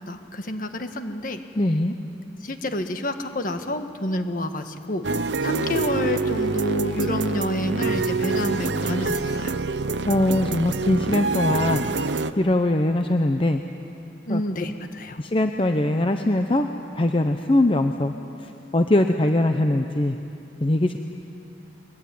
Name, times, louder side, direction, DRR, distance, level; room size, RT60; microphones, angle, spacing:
voice 1, 0.1-1.4 2.4-5.1 5.4-9.5 14.3-15.2, left 1 dB, 50° left, 7 dB, 1.6 m, -28 dB
voice 2, 1.6-1.9 10.1-12.1 12.4-13.6 14.3-14.4 15.2-16.7 16.9-18.1 18.4-20.2 20.6-21.0, left 1 dB, 30° left, 6 dB, 0.8 m, -22 dB
sound 1, 5.0-12.3, right 3 dB, 90° right, 0.8 m, -26 dB
23.0 x 21.5 x 9.5 m, 2.8 s
head